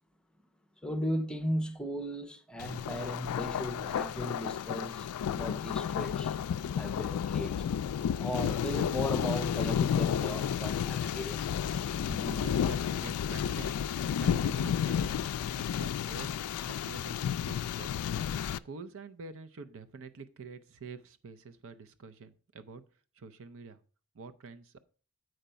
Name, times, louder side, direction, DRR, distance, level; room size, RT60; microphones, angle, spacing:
voice 1, 0.8-6.3 6.6-7.6 8.2-12.4, equal, 5° left, 0.9 m, -37 dB
Thunder, 2.6-18.6, left 8 dB, 70° left, 0.3 m, -32 dB
voice 2, 12.4-13.8 14.2-15.2 15.5-18.0 18.6-22.8 23.2-23.8 24.1-24.8, right 4 dB, 60° right, 0.6 m, -47 dB
7.8 x 5.1 x 5.5 m
head